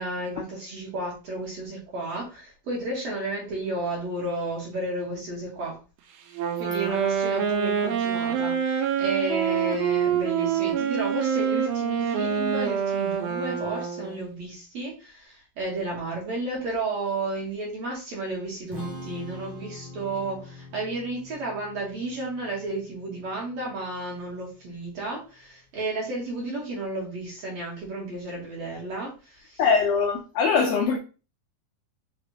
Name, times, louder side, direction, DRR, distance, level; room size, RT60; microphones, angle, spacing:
voice 1, 0.0-5.8 6.6-29.6, right 2 dB, 60° right, 1.9 m, -32 dB
Wind instrument woodwind instrument, 6.3-14.2, right 7 dB, 90° right, 2.6 m, -26 dB
Strum, 18.7-24.9, left 1 dB, 15° right, 0.7 m, -43 dB
voice 2, 29.6-31.0, left 5 dB, 80° left, 1.8 m, -22 dB
5.8 x 3.4 x 2.7 m
omnidirectional pair, 4.2 m